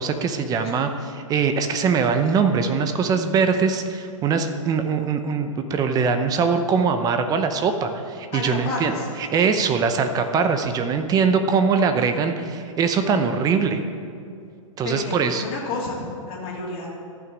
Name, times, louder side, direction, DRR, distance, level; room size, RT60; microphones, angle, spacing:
voice 1, 0.0-8.9 9.2-13.8 14.8-15.4, right 5 dB, 20° right, 8 dB, 0.8 m, -22 dB
voice 2, 8.3-9.1 14.8-16.9, left 3 dB, 35° left, -5 dB, 3.0 m, -30 dB
14.0 x 6.1 x 6.3 m, 2.4 s
hypercardioid pair, 130°, 17 cm